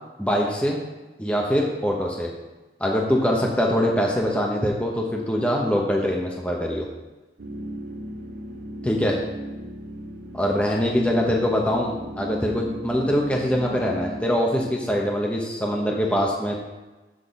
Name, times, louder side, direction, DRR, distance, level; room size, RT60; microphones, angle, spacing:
voice 1, 0.2-0.8 1.2-2.3 2.8-6.9 8.8-9.2 10.3-16.6, equal, 5° left, -2 dB, 0.9 m, -23 dB
sound 1, 7.4-14.2, right 1 dB, 80° right, 0.7 m, -37 dB
6.3 x 5.8 x 6.9 m, 1.2 s
head